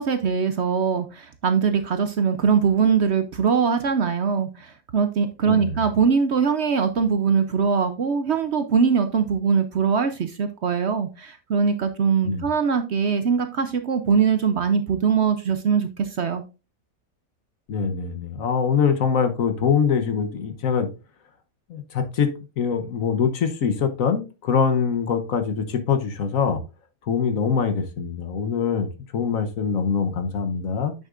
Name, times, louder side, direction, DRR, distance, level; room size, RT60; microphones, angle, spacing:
voice 1, 0.0-16.4, right 6 dB, 55° right, 9 dB, 0.8 m, -22 dB
voice 2, 5.5-5.8 12.2-12.5 17.7-20.9 21.7-22.3 22.6-26.6 27.0-28.9 29.1-30.9, left 6 dB, 65° left, 8 dB, 1.3 m, -23 dB
8.8 x 6.6 x 2.5 m, 0.30 s
omnidirectional pair, 1.6 m